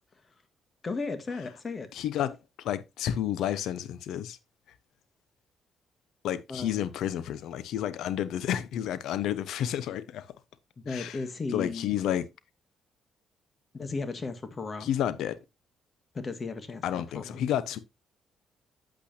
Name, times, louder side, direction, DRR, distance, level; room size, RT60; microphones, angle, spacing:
voice 1, 0.8-1.9 6.5-6.8 10.8-11.9 13.7-14.9 16.1-17.4, left 4 dB, 35° left, 1.7 m, -35 dB
voice 2, 1.9-4.4 6.2-10.3 10.9-11.2 11.5-12.3 14.8-15.4 16.8-17.8, left 10 dB, 80° left, 0.9 m, -31 dB
8.7 x 8.3 x 2.8 m
cardioid pair, 90°, 0 cm